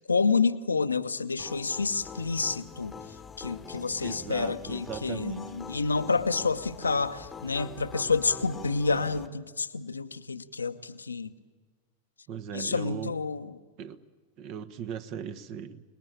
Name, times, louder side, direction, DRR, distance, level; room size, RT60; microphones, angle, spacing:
voice 1, 0.1-2.9 3.4-11.3 12.5-13.5, left 4 dB, 75° left, 0.9 m, -29 dB
sound 1, 1.4-9.3, left 5 dB, 15° left, 1.3 m, -44 dB
voice 2, 4.0-5.4 12.3-13.1 13.8-14.0 14.4-15.8, right 8 dB, 40° right, 1.4 m, -38 dB
28.0 x 20.0 x 8.8 m
figure-of-eight pair, 90°, 0 cm